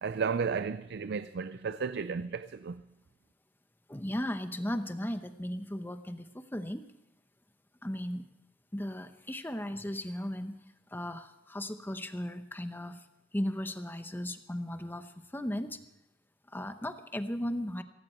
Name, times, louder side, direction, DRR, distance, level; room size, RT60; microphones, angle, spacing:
voice 1, 0.0-2.8, right 5 dB, 60° right, 0.4 m, -33 dB
voice 2, 3.9-6.8 7.8-8.2 8.7-10.6 10.9-13.0 13.3-15.8 16.5-17.8, left 1 dB, 10° left, 0.9 m, -36 dB
16.5 x 16.0 x 4.4 m
head